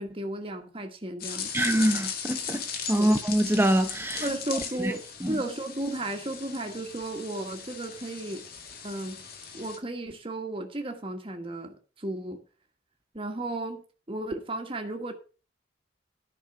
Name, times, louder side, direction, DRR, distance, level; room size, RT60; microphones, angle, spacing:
voice 1, 0.0-1.5 3.0-3.1 4.2-8.5 8.8-9.2 9.5-12.4 13.1-15.1, right 1 dB, 30° right, 1.5 m, -34 dB
sound 1, 1.2-9.8, left 6 dB, 55° left, 2.0 m, -38 dB
voice 2, 1.5-2.6 2.9-4.3 4.8-4.9 5.2-5.4, right 1 dB, 10° right, 0.9 m, -24 dB
10.5 x 5.5 x 6.8 m
head